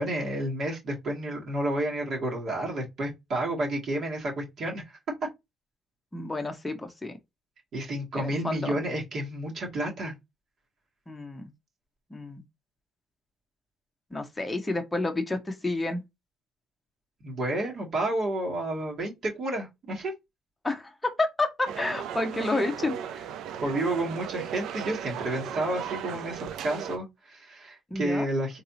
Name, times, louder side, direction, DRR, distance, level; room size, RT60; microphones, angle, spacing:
voice 1, 0.0-4.8 7.7-10.1 17.2-20.1 23.6-28.6, right 1 dB, 50° right, 2.2 m, -30 dB
voice 2, 6.1-7.2 8.2-8.7 11.1-11.5 12.1-12.4 14.1-16.0 20.6-23.0 27.9-28.3, left 2 dB, 10° left, 0.9 m, -30 dB
sound 1, 21.6-27.0, right 9 dB, 75° right, 0.6 m, -36 dB
4.0 x 3.6 x 2.8 m
cardioid pair, 130°, 0 cm